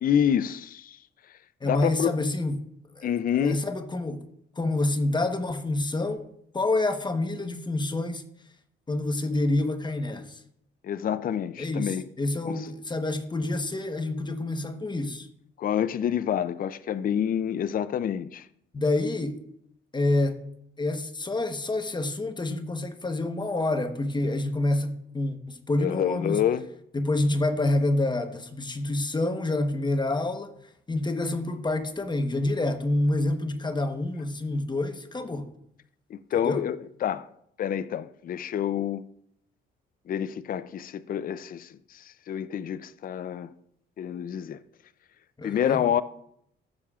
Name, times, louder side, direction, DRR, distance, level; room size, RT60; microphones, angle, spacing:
voice 1, 0.0-1.0 1.6-2.1 3.0-3.6 10.8-12.0 12.5-12.7 15.6-18.5 25.8-26.6 36.1-37.3 37.6-39.0 40.1-41.7 41.9-43.5 44.0-44.6 45.4-46.0, left 9 dB, 45° left, 0.4 m, -27 dB
voice 2, 1.6-2.7 3.0-3.1 3.4-4.2 4.6-6.3 6.5-8.2 8.9-10.4 11.6-15.3 18.7-19.4 19.9-20.4 20.8-26.4 26.9-30.5 30.9-35.5 36.4-36.6 45.4-45.8, left 2 dB, 20° left, 1.0 m, -27 dB
14.5 x 7.0 x 2.4 m
cardioid pair, 90°, 20 cm